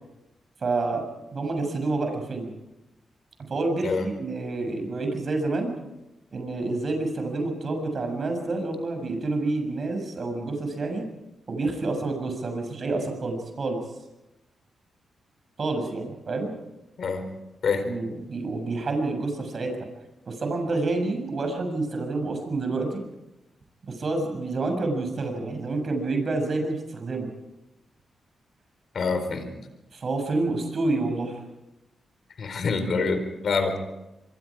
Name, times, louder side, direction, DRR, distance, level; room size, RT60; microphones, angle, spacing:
voice 1, 0.6-1.1 1.3-2.5 3.5-5.7 6.3-11.0 11.5-13.8 15.6-16.5 17.8-19.7 20.3-23.0 23.8-27.3 29.9-31.4, right 3 dB, 55° right, 5 dB, 7.0 m, -28 dB
voice 2, 28.9-29.5 32.4-33.8, left 4 dB, 65° left, 8 dB, 4.3 m, -26 dB
25.0 x 24.5 x 5.0 m, 0.96 s
supercardioid pair, 50°, 0 cm